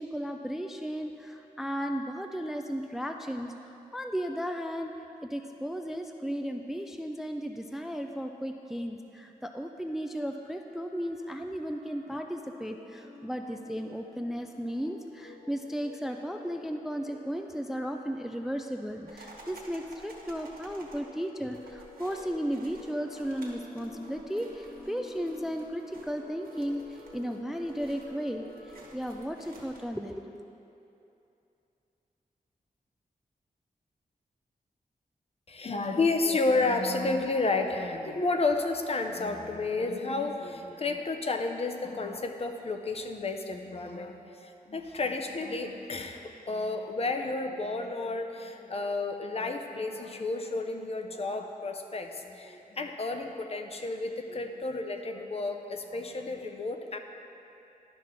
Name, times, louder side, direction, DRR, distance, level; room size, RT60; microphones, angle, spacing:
voice 1, 0.0-4.9 5.2-30.4, equal, ahead, 5 dB, 0.3 m, -35 dB
sound 1, 9.9-28.8, left 2 dB, 75° left, 1.0 m, -51 dB
sound 2, 19.1-30.0, right 2 dB, 85° right, 1.4 m, -53 dB
voice 2, 35.5-57.0, left 3 dB, 40° left, 5 dB, 0.6 m, -31 dB
12.0 x 5.6 x 3.7 m, 2.8 s
wide cardioid pair, 105°, 15 cm